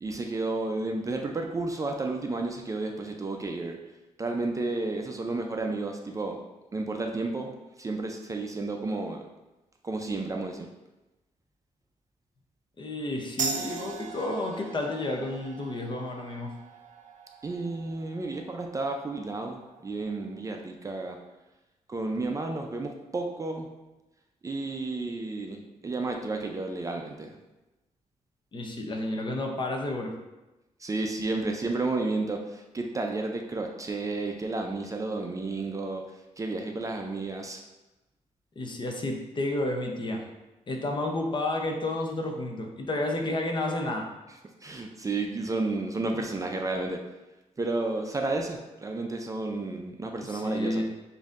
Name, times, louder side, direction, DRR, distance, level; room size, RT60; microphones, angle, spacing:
voice 1, 0.0-3.8 4.2-6.4 6.7-9.2 9.8-10.7 17.4-21.2 21.9-23.7 24.4-27.4 30.8-36.1 36.4-37.6 44.6-47.0 47.6-50.8, right 3 dB, 25° right, 2 dB, 0.4 m, -32 dB
voice 2, 12.8-16.5 28.5-30.1 38.6-40.2 40.7-44.1 50.2-50.8, left 2 dB, 40° left, 2 dB, 0.7 m, -31 dB
sound 1, 13.4-20.5, right 6 dB, 80° right, 0.5 m, -40 dB
7.1 x 2.6 x 2.5 m, 1.0 s
cardioid pair, 110°, 13 cm